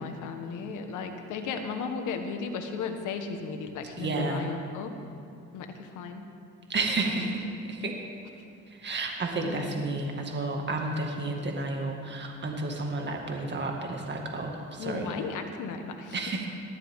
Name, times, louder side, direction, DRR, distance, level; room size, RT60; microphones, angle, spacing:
voice 1, 0.0-4.9 5.5-6.3 7.0-7.4 9.4-9.9 14.8-16.2, left 5 dB, 85° left, 5 dB, 1.4 m, -35 dB
voice 2, 4.0-4.4 6.7-8.0 8.7-15.1 16.1-16.5, right 2 dB, 35° right, 1 dB, 2.0 m, -31 dB
19.5 x 13.5 x 3.7 m, 2.5 s
cardioid pair, 90°, 30 cm